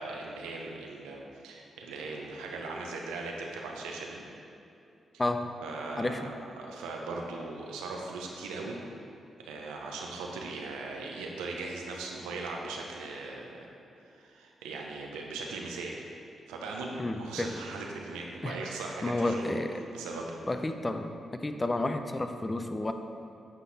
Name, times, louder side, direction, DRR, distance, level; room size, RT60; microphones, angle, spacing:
voice 1, 0.0-4.2 5.6-8.8 9.4-13.6 14.0-16.0 16.5-19.6 19.9-20.4, right 3 dB, 90° right, 0 dB, 0.8 m, -39 dB
voice 2, 5.2-5.5 6.0-6.3 17.0-17.5 18.4-18.6 19.0-19.7 20.5-21.1 21.4-22.9, left 2 dB, 25° left, 7 dB, 0.6 m, -31 dB
8.8 x 5.7 x 4.1 m, 2.7 s
supercardioid pair, 45°, 0 cm